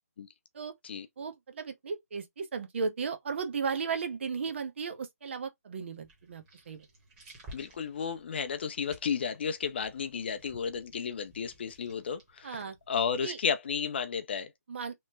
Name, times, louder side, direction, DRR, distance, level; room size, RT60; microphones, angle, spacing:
voice 1, 1.2-6.9 12.4-12.8 13.2-13.4 14.7-14.9, right 5 dB, 45° right, 0.7 m, -35 dB
sound 1, 5.9-13.3, right 1 dB, 15° right, 1.0 m, -55 dB
voice 2, 7.5-14.5, left 6 dB, 40° left, 0.4 m, -33 dB
3.0 x 2.1 x 3.2 m
figure-of-eight pair, 155°, 9 cm